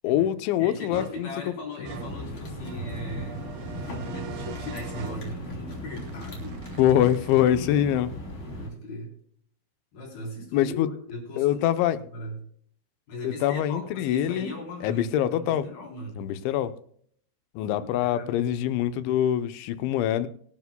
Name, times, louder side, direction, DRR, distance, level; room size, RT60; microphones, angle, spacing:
voice 1, 0.0-1.3 6.8-8.1 10.5-10.9 11.4-12.0 13.2-14.5 14.8-15.6 16.2-16.7 17.6-20.3, left 11 dB, 80° left, 10 dB, 3.0 m, -24 dB
voice 2, 0.6-3.5 3.9-6.6 7.4-7.6 8.6-9.1 9.9-11.8 12.1-12.4 13.1-16.3 17.7-17.8 18.1-18.6, left 1 dB, 50° left, -1 dB, 5.2 m, -38 dB
sound 1, 0.9-7.5, right 9 dB, 80° right, 2.1 m, -43 dB
sound 2, 1.9-8.7, left 1 dB, 30° left, 3.3 m, -37 dB
24.5 x 9.5 x 2.2 m, 0.62 s
omnidirectional pair, 5.6 m